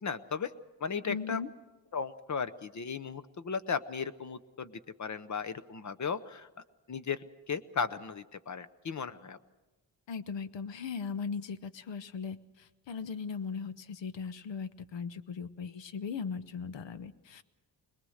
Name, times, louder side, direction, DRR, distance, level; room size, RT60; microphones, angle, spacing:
voice 1, 0.0-0.5 0.8-1.4 1.9-6.5 6.9-9.4, left 6 dB, 40° left, 13 dB, 0.8 m, -36 dB
voice 2, 1.1-1.5 10.1-17.4, left 5 dB, 80° left, 12 dB, 1.0 m, -38 dB
22.5 x 21.0 x 6.5 m, 1.1 s
wide cardioid pair, 145°, 44 cm